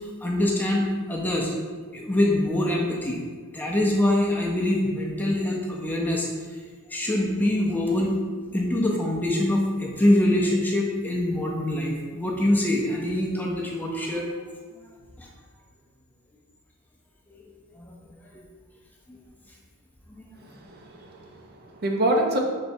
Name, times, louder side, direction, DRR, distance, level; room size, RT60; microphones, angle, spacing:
voice 1, 0.2-1.5 1.9-3.2 3.5-6.3 6.9-8.2 8.5-14.3 15.2-15.3 17.3-17.4 17.8-17.9 19.1-19.2 20.2-20.3, left 1 dB, 10° left, -2 dB, 0.5 m, -24 dB
voice 2, 20.3-22.4, right 1 dB, 45° right, 1 dB, 0.6 m, -27 dB
5.6 x 3.1 x 2.6 m, 1.5 s
head